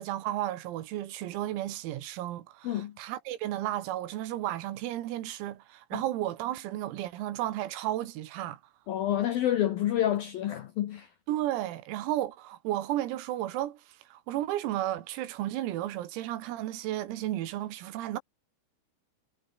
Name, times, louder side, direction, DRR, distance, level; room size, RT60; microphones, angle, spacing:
voice 1, 0.0-8.6 11.3-13.8 14.1-18.2, right 14 dB, 90° right, 4.5 m, -33 dB
voice 2, 8.9-11.1, left 12 dB, 80° left, 2.1 m, -28 dB
omnidirectional pair, 6.0 m